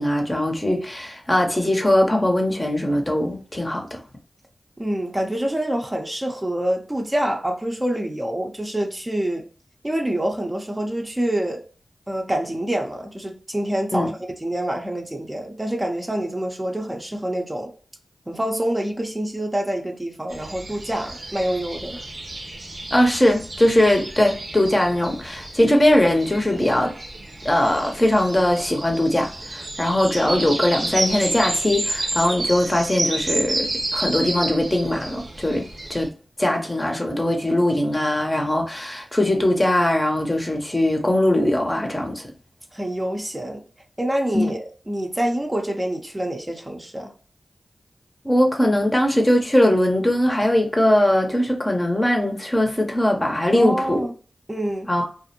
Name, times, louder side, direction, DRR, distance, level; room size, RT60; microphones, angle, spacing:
voice 1, 0.0-4.0 13.9-14.1 22.9-26.9 27.4-35.6 35.9-36.1 36.4-42.2 44.3-44.5 48.2-54.1 54.9-55.1, left 1 dB, 25° left, 0.7 m, -20 dB
voice 2, 4.8-9.5 9.8-11.6 12.1-17.7 18.3-22.0 42.7-43.6 44.0-47.1 53.5-54.1 54.5-54.9, right 1 dB, 25° right, 0.6 m, -26 dB
sound 1, 20.3-36.1, right 2 dB, 60° right, 0.7 m, -30 dB
2.4 x 2.0 x 2.8 m
cardioid pair, 45°, 0 cm